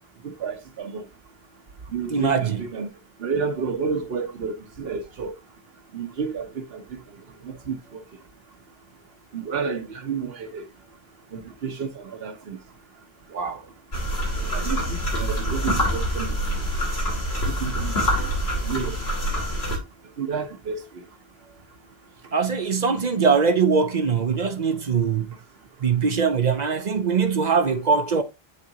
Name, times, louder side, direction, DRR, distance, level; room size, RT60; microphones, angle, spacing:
voice 1, 0.2-1.0 1.9-2.9 3.2-5.3 5.9-7.0 7.4-8.0 9.3-10.7 11.3-12.6 13.3-13.6 14.5-16.4 17.5-18.3 18.6-19.0 20.2-21.0, right 5 dB, 75° right, 1.2 m, -30 dB
voice 2, 2.1-2.6 22.3-25.3 25.8-28.2, right 5 dB, 50° right, 0.7 m, -22 dB
sound 1, 13.9-19.8, equal, 80° left, 2.8 m, -25 dB
9.7 x 3.7 x 2.8 m
omnidirectional pair, 1.0 m